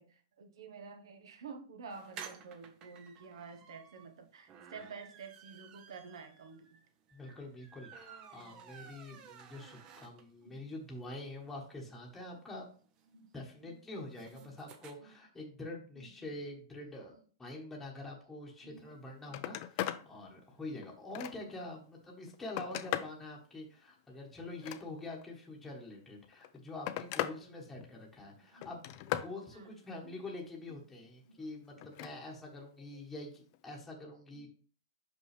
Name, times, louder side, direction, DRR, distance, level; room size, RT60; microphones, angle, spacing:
voice 1, 0.0-6.8 9.1-9.2 10.4-10.6 13.1-13.3 13.6-13.8 14.3-14.5 15.0-15.1 16.0-16.1 18.6-18.9 19.2-19.4 20.3-20.4 27.4-27.6 28.4-28.7 29.5-30.1 31.2-31.4 31.8-31.9 34.3-34.5, right 5 dB, 80° right, 7 dB, 1.1 m, -51 dB
sound 1, 1.9-10.5 10.9-11.0 11.2-11.3 11.5-14.9, right 7 dB, 30° right, 0.7 m, -54 dB
voice 2, 7.1-12.7 13.3-34.5, left 2 dB, 5° left, -2 dB, 1.2 m, -46 dB
Telephone, 18.8-18.9 19.2-20.0 20.5-21.6 22.2-23.2 24.4-25.2 26.2-27.4 27.7-28.2 28.6-29.3 31.8-32.1 33.5-33.7, left 13 dB, 40° left, 0.4 m, -38 dB
5.5 x 5.4 x 3.3 m, 0.42 s
hypercardioid pair, 155°, 3 cm